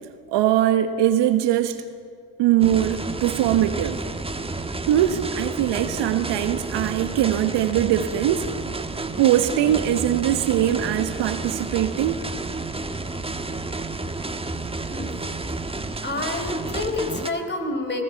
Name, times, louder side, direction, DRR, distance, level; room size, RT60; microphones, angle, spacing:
voice 1, 0.3-1.8 2.4-4.0 4.9-8.5 9.2-12.2, right 12 dB, 55° right, 9 dB, 1.4 m, -21 dB
sound 1, 2.6-17.3, right 2 dB, 10° right, 1.3 m, -31 dB
voice 2, 14.9-15.2 16.0-18.0, left 2 dB, 20° left, 5 dB, 4.2 m, -28 dB
21.0 x 19.0 x 7.1 m, 2.1 s
hypercardioid pair, 70°, 50 cm